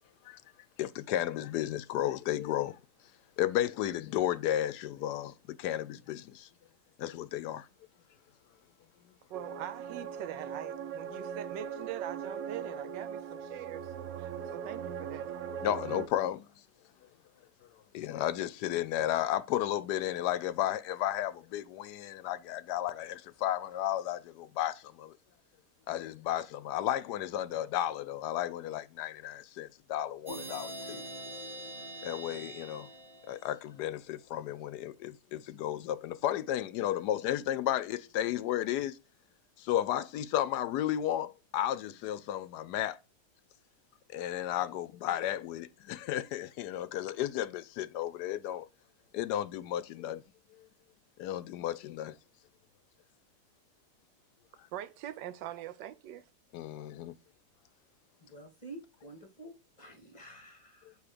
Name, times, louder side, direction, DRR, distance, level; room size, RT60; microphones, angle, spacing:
voice 1, 0.8-2.8 3.4-6.5 7.0-7.7 15.6-16.5 17.9-25.1 25.9-31.0 32.0-32.9 33.3-39.0 39.6-43.0 44.1-48.6 49.1-50.2 50.6-50.7 51.2-52.1 56.5-57.1, left 12 dB, 75° left, 1.1 m, -33 dB
sound 1, 9.3-16.1, right 7 dB, 65° right, 0.9 m, -40 dB
voice 2, 9.3-13.9 14.2-15.3 54.7-56.2, right 12 dB, 85° right, 1.3 m, -43 dB
sound 2, 30.3-33.8, right 1 dB, 35° right, 1.3 m, -44 dB
voice 3, 58.2-61.0, right 2 dB, 30° left, 1.0 m, -50 dB
7.9 x 2.9 x 4.9 m
omnidirectional pair, 1.9 m